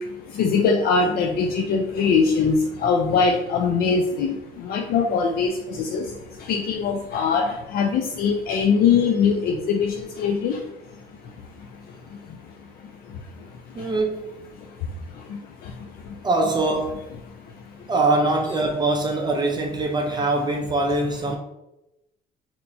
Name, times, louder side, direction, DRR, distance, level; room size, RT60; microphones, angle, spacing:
voice 1, 0.4-4.3 4.6-6.0 6.5-10.6, left 5 dB, 65° left, 0.4 m, -21 dB
voice 2, 13.8-14.3 16.2-17.1 17.9-21.4, right 2 dB, 25° right, 0.4 m, -23 dB
2.8 x 2.2 x 4.0 m
cardioid pair, 110°, 17 cm